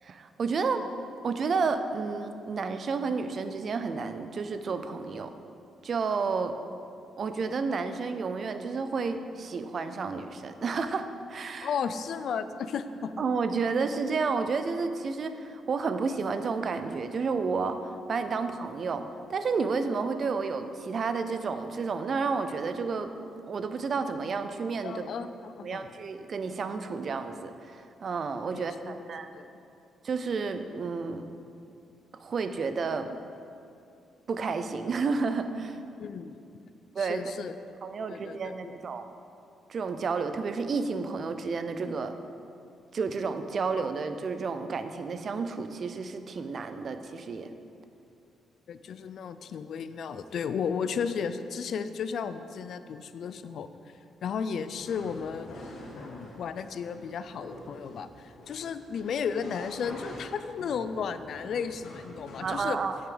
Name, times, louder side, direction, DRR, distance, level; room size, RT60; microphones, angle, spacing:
voice 1, 0.0-0.9 1.2-5.3 5.8-6.6 7.2-11.7 13.2-17.8 18.1-23.1 23.5-25.1 25.6-29.3 30.0-31.3 32.2-33.2 34.3-35.8 36.9-37.4 37.8-39.1 39.7-42.2 42.9-47.5 62.4-63.0, right 4 dB, 45° right, 9 dB, 0.6 m, -31 dB
voice 2, 11.6-13.1 24.8-25.9 28.5-29.5 36.0-36.4 37.0-37.6 38.1-38.7 48.7-53.7 54.2-62.8, left 6 dB, 65° left, 11 dB, 0.4 m, -34 dB
sound 1, 54.7-62.6, left 1 dB, 80° left, 2.3 m, -46 dB
9.2 x 8.6 x 4.0 m, 2.6 s
cardioid pair, 105°, 0 cm